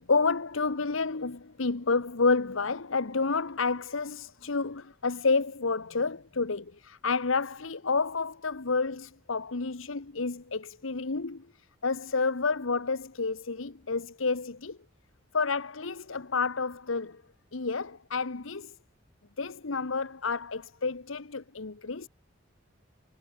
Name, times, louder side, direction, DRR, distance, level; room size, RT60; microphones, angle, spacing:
voice 1, 0.0-14.8 15.3-17.2 17.5-18.8 19.4-22.1, left 4 dB, 85° left, 1.1 m, -30 dB
head